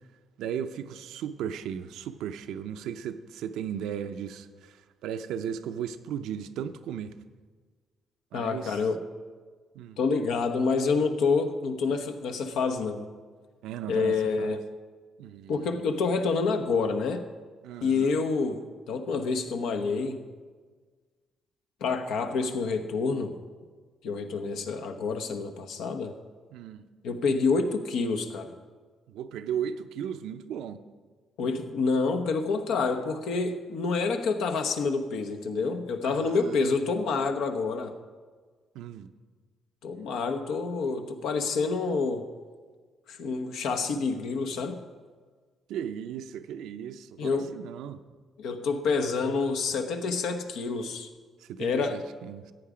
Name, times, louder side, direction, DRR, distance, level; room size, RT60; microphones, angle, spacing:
voice 1, 0.4-7.1 8.3-8.8 9.7-10.0 13.6-14.6 15.2-15.8 17.6-18.2 26.5-26.8 29.1-30.8 36.0-36.7 38.7-39.1 45.7-48.0 51.4-52.5, right 9 dB, 90° right, 0.6 m, -36 dB
voice 2, 8.3-9.0 10.0-13.1 13.9-14.7 15.5-17.2 17.8-20.3 21.8-23.4 24.0-26.1 27.0-28.6 31.4-37.9 39.8-42.3 43.1-44.8 47.2-47.5 48.4-51.1 51.6-52.1, left 4 dB, 85° left, 1.0 m, -28 dB
14.5 x 8.7 x 5.0 m
cardioid pair, 90°, 0 cm